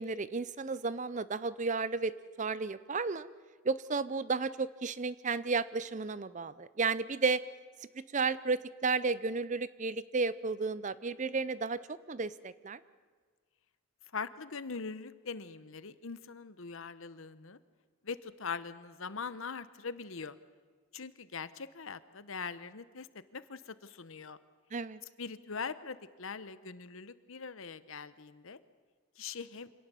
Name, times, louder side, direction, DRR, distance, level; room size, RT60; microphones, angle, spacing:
voice 1, 0.0-2.1 2.4-3.3 3.6-7.4 8.0-12.8 24.7-25.0, right 4 dB, 35° right, 16 dB, 0.6 m, -33 dB
voice 2, 14.1-17.6 18.0-20.4 20.9-23.1 23.3-24.4 25.2-28.6 29.2-29.7, left 5 dB, 65° left, 14 dB, 0.9 m, -42 dB
26.0 x 18.0 x 6.9 m, 1.5 s
head